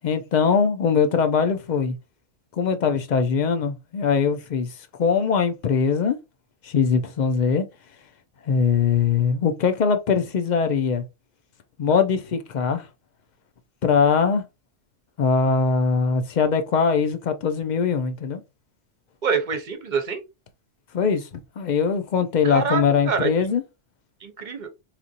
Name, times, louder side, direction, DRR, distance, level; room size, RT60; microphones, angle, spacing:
voice 1, 0.0-2.0 2.5-4.7 5.0-6.2 6.6-7.6 8.5-11.0 11.8-12.9 13.8-14.4 15.2-18.4 20.9-23.6, left 6 dB, 60° left, 0.5 m, -21 dB
voice 2, 19.2-20.2 22.4-23.5 24.2-24.7, right 5 dB, 45° right, 0.7 m, -26 dB
4.3 x 2.5 x 2.7 m
omnidirectional pair, 1.3 m